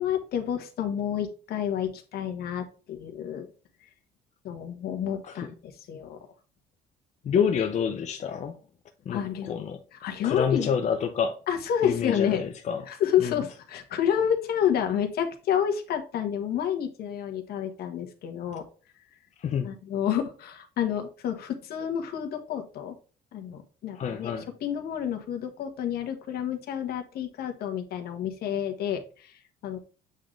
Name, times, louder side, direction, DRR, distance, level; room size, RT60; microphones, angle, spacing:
voice 1, 0.0-3.5 4.4-6.3 9.1-9.5 9.9-10.7 11.5-12.4 12.9-18.6 19.6-23.0 23.3-24.3 24.6-29.8, left 9 dB, 65° left, 1.4 m, -29 dB
voice 2, 7.2-8.6 9.1-9.8 10.2-11.4 11.8-12.9 13.2-13.4 19.4-19.7 23.9-24.5, left 7 dB, 45° left, 0.7 m, -28 dB
8.1 x 3.9 x 3.3 m
cardioid pair, 110°, 17 cm